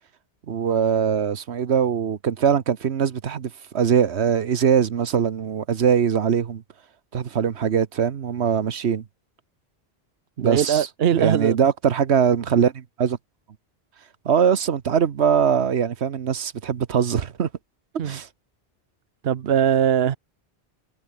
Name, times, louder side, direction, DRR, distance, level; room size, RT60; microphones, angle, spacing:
voice 1, 0.5-6.6 7.1-9.0 10.4-10.9 11.1-13.2 14.2-17.5 18.0-18.3, right 7 dB, 85° right, 1.3 m, -22 dB
voice 2, 10.4-11.6 18.0-18.2 19.2-20.2, right 9 dB, 70° right, 1.0 m, -21 dB
omnidirectional pair, 1.1 m